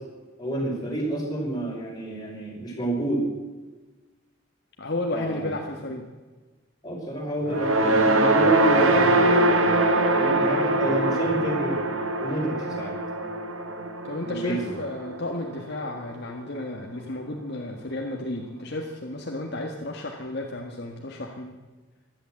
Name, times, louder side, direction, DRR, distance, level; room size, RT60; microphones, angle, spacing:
voice 1, 0.4-3.2 5.1-5.5 6.8-11.8 12.2-12.9 14.2-14.6, right 1 dB, 20° left, -2 dB, 5.2 m, -29 dB
voice 2, 4.8-6.1 14.0-21.5, left 1 dB, 50° left, 1 dB, 1.7 m, -33 dB
sound 1, 7.4-15.8, right 2 dB, 75° right, 1.8 m, -23 dB
16.0 x 11.5 x 7.8 m, 1.3 s
head